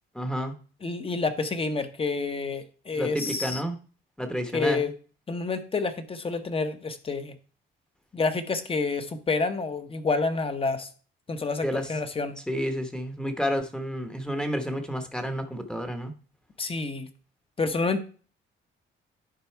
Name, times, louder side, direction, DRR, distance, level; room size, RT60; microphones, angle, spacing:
voice 1, 0.1-0.5 2.9-3.8 4.2-4.9 11.6-11.9 12.5-16.1, equal, 5° left, 7 dB, 1.0 m, -30 dB
voice 2, 0.8-3.6 4.5-4.9 5.3-7.3 8.1-10.9 11.3-12.4 16.6-17.1 17.6-18.0, left 3 dB, 30° left, 8 dB, 1.0 m, -28 dB
10.5 x 4.1 x 4.6 m, 0.40 s
cardioid pair, 105°, 20 cm